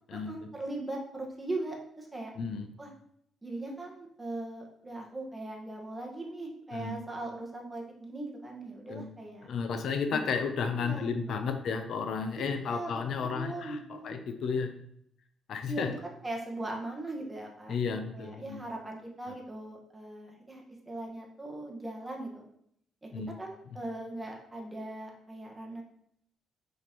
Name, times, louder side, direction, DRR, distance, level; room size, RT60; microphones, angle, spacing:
voice 1, 0.1-2.3 2.8-2.9 3.4-9.5 10.1-10.3 10.8-11.1 11.5-11.6 12.3-12.9 13.2-14.2 15.7-17.7 18.1-22.5 23.0-23.1 23.4-25.8, right 2 dB, 15° right, -1 dB, 1.5 m, -39 dB
voice 2, 2.4-2.7 6.7-6.9 8.9-9.1 9.4-14.7 15.5-15.9 17.7-18.6 23.1-23.3, left 5 dB, 65° left, 7 dB, 0.6 m, -33 dB
5.9 x 5.2 x 3.0 m, 0.70 s
cardioid pair, 90°, 0 cm